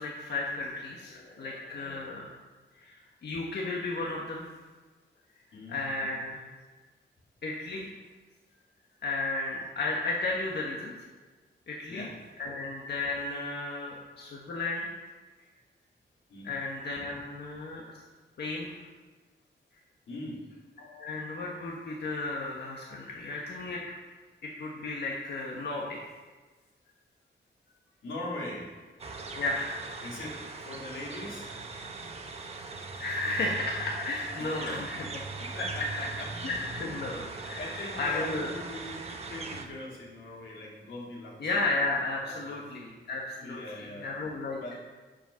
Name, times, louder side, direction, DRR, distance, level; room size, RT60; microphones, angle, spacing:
voice 1, 0.0-2.4 2.7-4.5 5.7-6.5 7.4-7.9 9.0-10.9 11.7-12.1 12.4-14.9 16.4-18.0 18.4-18.8 20.8-23.8 24.4-26.0 29.3-29.8 33.0-35.0 36.4-38.5 41.4-44.8, left 2 dB, 60° left, -2 dB, 1.4 m, -34 dB
voice 2, 1.0-2.2 5.5-5.8 6.7-6.8 11.9-12.1 13.8-13.9 15.5-15.6 16.3-16.5 17.1-17.2 20.1-20.4 21.1-21.2 28.0-28.7 30.0-31.5 34.4-35.1 35.4-36.3 37.3-39.0 39.3-41.4 42.2-42.6 43.4-44.1 44.6-44.8, left 1 dB, 90° left, -4 dB, 3.3 m, -41 dB
sound 1, 29.0-39.7, right 3 dB, 30° right, 1.0 m, -40 dB
9.0 x 7.1 x 6.4 m, 1.3 s
wide cardioid pair, 170°, 20 cm